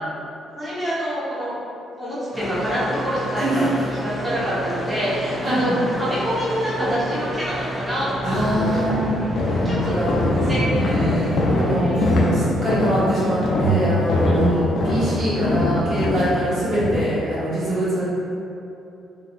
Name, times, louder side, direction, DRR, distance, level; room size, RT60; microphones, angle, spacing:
voice 1, 0.5-1.6 2.0-5.7 6.0-8.9 9.6-10.6 11.3-12.1 14.2-14.4, equal, 20° right, -11 dB, 1.1 m, -26 dB
sound 1, 2.3-11.8, equal, ahead, 0.6 m, -29 dB
voice 2, 5.4-5.8 8.2-9.1 9.4-18.0, equal, 55° right, -10 dB, 1.1 m, -24 dB
sound 2, 8.3-17.1, left 2 dB, 75° left, 0.4 m, -23 dB
sound 3, 9.4-14.7, right 2 dB, 80° right, 1.0 m, -27 dB
3.6 x 2.5 x 2.5 m, 2.8 s
cardioid pair, 90°, 0 cm